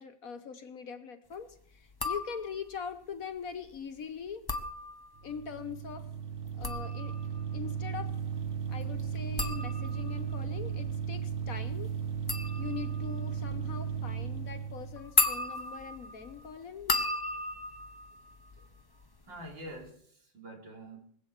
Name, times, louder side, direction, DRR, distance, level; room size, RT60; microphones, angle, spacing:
voice 1, 0.0-4.4 5.2-6.1 6.6-7.2 7.5-8.2 8.7-11.9 12.6-17.0, left 6 dB, 55° left, 9 dB, 1.3 m, -42 dB
sound 1, 1.9-2.7 4.3-5.4 6.4-19.1 19.4-19.9, left 2 dB, 20° left, 0.6 m, -36 dB
sound 2, 5.2-15.1, right 7 dB, 45° right, 1.4 m, -36 dB
voice 2, 19.3-21.0, right 1 dB, 80° right, 0 dB, 4.3 m, -46 dB
20.0 x 8.2 x 8.2 m, 0.63 s
omnidirectional pair, 2.0 m